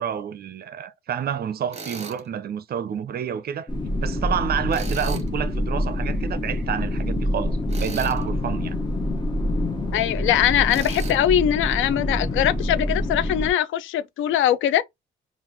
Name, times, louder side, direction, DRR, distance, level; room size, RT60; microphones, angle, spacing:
voice 1, 0.0-3.7 4.0-8.8, right 8 dB, 50° right, 0.5 m, -29 dB
Tools, 1.7-2.2 4.7-5.3 7.7-8.2 10.7-11.2, right 4 dB, 35° right, 1.0 m, -37 dB
sound 1, 3.7-13.5, left 1 dB, 20° left, 0.9 m, -26 dB
voice 2, 9.9-14.8, left 11 dB, 80° left, 0.4 m, -21 dB
3.7 x 2.5 x 3.0 m
cardioid pair, 90°, 20 cm